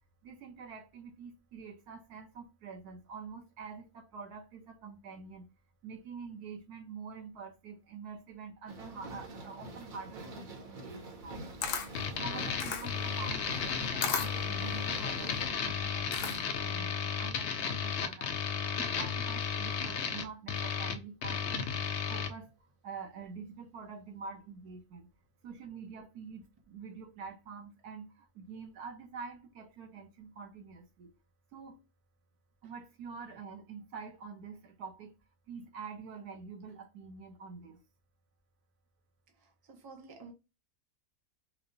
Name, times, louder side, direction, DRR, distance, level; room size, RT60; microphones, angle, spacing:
voice 1, 0.2-5.5 5.8-11.4 12.2-18.3 18.8-21.7 22.1-22.5 22.8-25.1 25.4-31.1 31.5-31.9 32.6-35.1 35.5-37.8, right 5 dB, 90° right, 1.4 m, -46 dB
sound 1, 8.7-15.5, right 2 dB, 65° right, 1.4 m, -46 dB
Camera, 11.2-16.7, left 6 dB, 90° left, 1.2 m, -37 dB
sound 2, 11.9-22.3, left 7 dB, 65° left, 0.7 m, -34 dB
voice 2, 39.4-40.3, right 4 dB, 25° right, 0.5 m, -51 dB
4.7 x 2.2 x 2.6 m
omnidirectional pair, 1.6 m